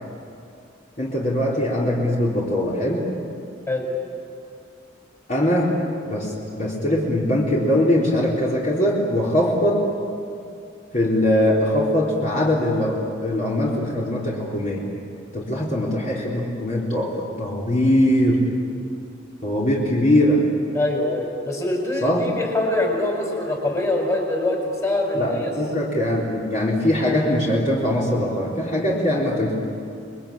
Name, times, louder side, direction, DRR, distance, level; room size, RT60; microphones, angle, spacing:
voice 1, 1.0-3.1 5.3-5.7 6.0-9.8 10.9-14.8 15.3-18.5 19.4-20.4 22.0-22.3 25.1-29.5, left 1 dB, 40° left, -5 dB, 4.0 m, -21 dB
voice 2, 20.7-25.5, left 2 dB, 15° left, 1 dB, 4.9 m, -24 dB
29.5 x 22.0 x 8.7 m, 2.5 s
head